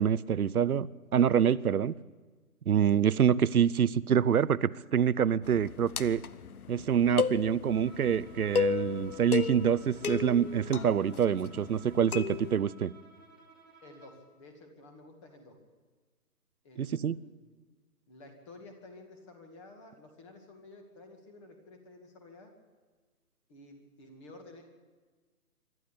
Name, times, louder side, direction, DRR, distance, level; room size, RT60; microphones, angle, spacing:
voice 1, 0.0-1.9 2.7-6.2 6.7-12.9 16.8-17.2, right 8 dB, 70° right, 19 dB, 0.8 m, -26 dB
sound 1, 5.4-12.6, left 7 dB, 65° left, 1.0 m, -35 dB
Bowed string instrument, 7.6-14.3, right 3 dB, ahead, 1.5 m, -55 dB
voice 2, 13.8-15.6 16.6-17.4 18.1-22.5 23.5-24.6, left 2 dB, 20° left, 4 dB, 2.3 m, -52 dB
25.0 x 12.5 x 8.4 m, 1.4 s
hypercardioid pair, 165°, 46 cm